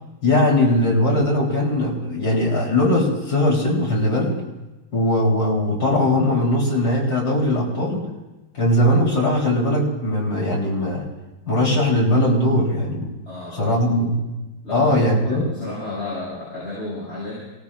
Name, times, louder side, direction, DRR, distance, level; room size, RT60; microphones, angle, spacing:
voice 1, 0.2-4.4 4.9-8.1 8.5-11.0 11.5-13.1 13.5-14.1 14.7-15.4, left 1 dB, 65° left, -4 dB, 4.2 m, -20 dB
voice 2, 13.2-13.7 14.6-17.4, left 2 dB, 40° left, -8 dB, 6.5 m, -32 dB
27.0 x 17.5 x 2.5 m, 1.1 s
omnidirectional pair, 1.8 m